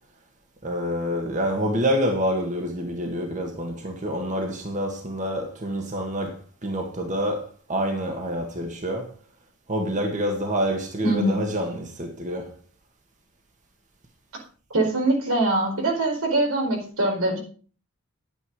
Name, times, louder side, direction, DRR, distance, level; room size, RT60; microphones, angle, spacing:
voice 1, 0.6-9.1 9.7-12.5, equal, 35° right, 1.7 m, -27 dB
voice 2, 11.0-11.5 14.7-17.4, right 2 dB, 85° right, 4.4 m, -23 dB
10.5 x 9.0 x 4.9 m
head